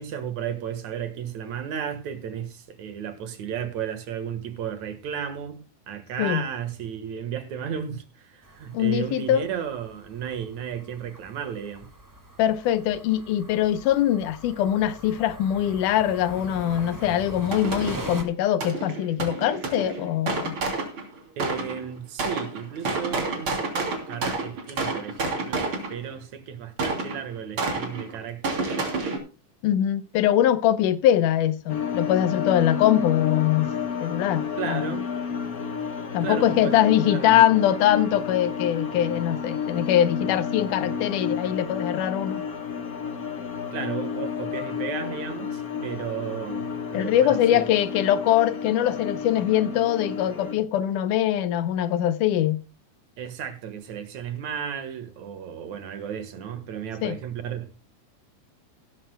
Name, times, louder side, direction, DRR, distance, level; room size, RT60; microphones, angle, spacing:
voice 1, 0.0-5.6 5.9-11.9 21.4-28.7 34.6-35.1 36.2-37.4 43.7-47.7 53.2-57.7, right 8 dB, 65° right, 2.6 m, -34 dB
sound 1, 8.4-18.2, right 1 dB, 25° right, 0.4 m, -42 dB
voice 2, 8.7-9.5 12.4-20.6 29.6-33.7 34.0-34.8 36.1-42.4 46.9-52.6 57.0-57.2, left 11 dB, 80° left, 2.3 m, -22 dB
sound 2, 17.5-18.2 18.6-21.8 22.2-26.1 26.8-29.2, right 3 dB, 40° right, 3.7 m, -29 dB
sound 3, 31.7-50.6, left 6 dB, 50° left, 1.0 m, -31 dB
16.5 x 13.0 x 2.2 m
omnidirectional pair, 3.6 m